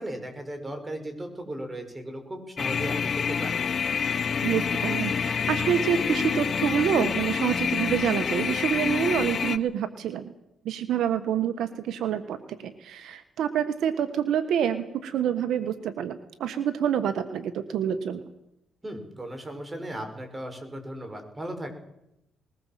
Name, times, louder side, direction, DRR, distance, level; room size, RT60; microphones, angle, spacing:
voice 1, 0.0-3.6 18.8-21.7, right 1 dB, 20° right, 6 dB, 6.0 m, -36 dB
sound 1, 2.6-9.6, left 6 dB, 50° left, 1.2 m, -27 dB
voice 2, 4.4-10.3 10.6-18.2, right 9 dB, 75° right, 10 dB, 1.4 m, -27 dB
21.0 x 19.5 x 7.6 m, 0.83 s
cardioid pair, 90°, 0 cm